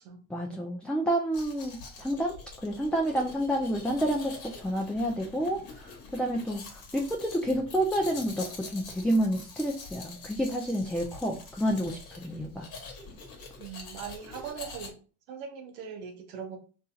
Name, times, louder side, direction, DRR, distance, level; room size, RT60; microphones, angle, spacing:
voice 1, 0.3-2.4 2.6-12.7, equal, 5° left, 0 dB, 0.4 m, -29 dB
Domestic sounds home sounds, 1.3-14.9, left 4 dB, 60° left, 1.0 m, -45 dB
voice 2, 13.6-15.0 15.3-16.6, right 7 dB, 85° right, 4 dB, 0.7 m, -40 dB
2.7 x 2.5 x 2.4 m, 0.38 s
hypercardioid pair, 55°, 41 cm